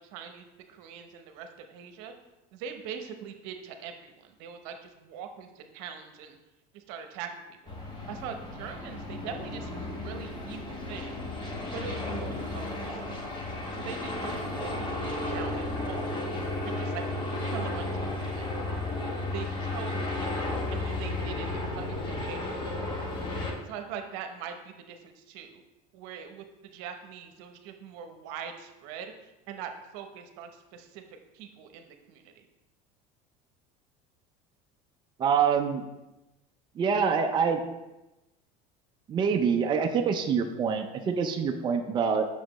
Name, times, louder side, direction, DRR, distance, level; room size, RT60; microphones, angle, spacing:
voice 1, 0.1-2.1 2.5-6.4 6.7-7.7 8.1-11.2 11.6-13.0 13.7-16.2 16.6-17.0 17.5-18.5 19.3-22.5 23.4-25.6 25.9-31.0 31.3-32.4, right 7 dB, 75° right, 6 dB, 0.8 m, -42 dB
sound 1, 7.7-23.5, left 2 dB, 25° left, 1.2 m, -33 dB
voice 2, 35.2-35.8 36.8-37.6 39.1-42.3, right 6 dB, 25° right, 3 dB, 0.5 m, -25 dB
7.4 x 6.3 x 3.0 m, 1.0 s
cardioid pair, 135°, 18 cm